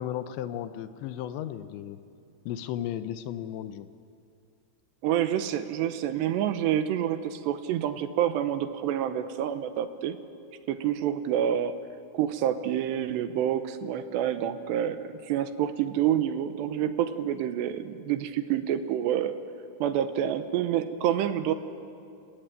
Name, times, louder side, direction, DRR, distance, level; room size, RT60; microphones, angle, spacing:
voice 1, 0.0-2.0 2.5-3.9, left 11 dB, 80° left, 11 dB, 2.9 m, -35 dB
voice 2, 5.0-10.2 10.7-11.8 12.1-19.3 19.8-21.5, right 10 dB, 75° right, 10 dB, 2.9 m, -28 dB
29.0 x 18.5 x 9.1 m, 2.5 s
omnidirectional pair, 5.5 m